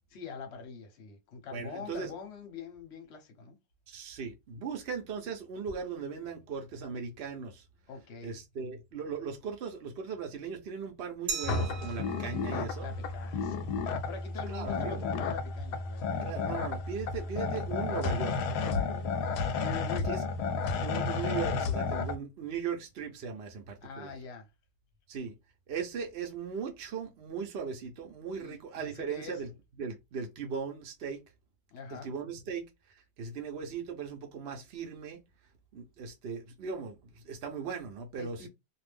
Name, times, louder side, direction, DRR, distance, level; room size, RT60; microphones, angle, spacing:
voice 1, 0.1-3.6 7.9-8.4 12.3-16.1 19.5-20.1 23.8-24.5 28.3-29.4 31.7-32.1 38.2-38.5, left 5 dB, 50° left, 0.9 m, -44 dB
voice 2, 1.5-2.1 3.9-7.6 8.2-12.9 14.5-15.1 16.2-19.2 20.1-20.2 20.8-24.1 25.1-25.3 25.7-29.5 29.8-31.2 31.9-32.7 33.2-35.2 35.7-38.4, right 6 dB, 55° right, 0.7 m, -38 dB
Glass, 11.3-14.0, right 6 dB, 80° right, 1.2 m, -41 dB
sound 1, 11.4-22.2, left 4 dB, 75° left, 1.1 m, -32 dB
2.6 x 2.4 x 3.3 m
omnidirectional pair, 1.9 m